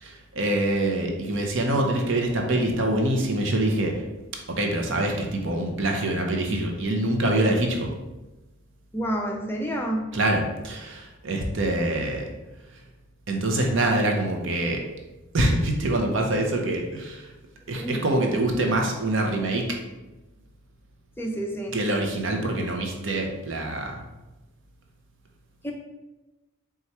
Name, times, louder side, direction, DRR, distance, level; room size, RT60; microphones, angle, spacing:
voice 1, 0.0-3.9 4.5-7.9 10.1-12.3 13.3-14.8 15.3-17.3 17.7-19.8 21.7-23.9, right 1 dB, 60° right, 2 dB, 0.7 m, -25 dB
voice 2, 8.9-10.0 17.7-18.0 21.2-21.8 25.6-25.7, right 1 dB, 10° left, 0 dB, 0.5 m, -29 dB
4.5 x 2.4 x 4.2 m, 1.1 s
head